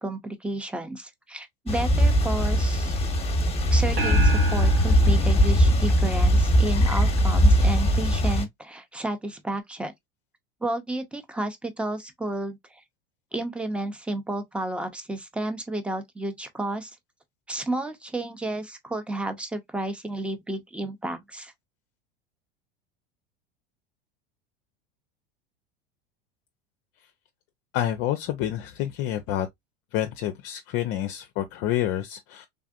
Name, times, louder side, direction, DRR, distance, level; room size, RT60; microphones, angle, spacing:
voice 1, 0.0-3.0 3.7-9.9 10.6-12.8 13.3-17.0 17.5-21.5, right 2 dB, 5° right, 0.6 m, -32 dB
sound 1, 1.7-8.5, equal, 20° left, 1.0 m, -20 dB
sound 2, 4.0-6.6, left 2 dB, 80° right, 1.4 m, -29 dB
voice 2, 27.7-29.5 29.9-32.5, left 12 dB, 50° left, 0.5 m, -28 dB
3.6 x 2.5 x 2.4 m
hypercardioid pair, 85°, 29 cm